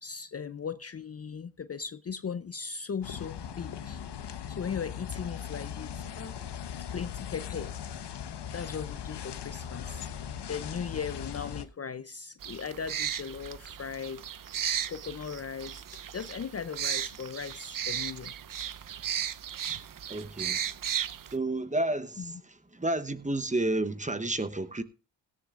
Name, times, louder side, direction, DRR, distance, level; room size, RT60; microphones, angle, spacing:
voice 1, 0.0-6.4 6.7-7.7 8.5-14.5 14.9-15.8 16.1-18.3 22.2-22.4, left 6 dB, 35° left, 0.6 m, -38 dB
sound 1, 3.0-11.7, left 8 dB, 65° left, 1.1 m, -39 dB
sound 2, 12.4-21.3, right 9 dB, 45° right, 0.7 m, -35 dB
voice 2, 20.1-20.6 21.3-22.3 22.7-24.8, right 2 dB, 15° right, 1.0 m, -30 dB
17.0 x 13.5 x 2.5 m
cardioid pair, 70°, 44 cm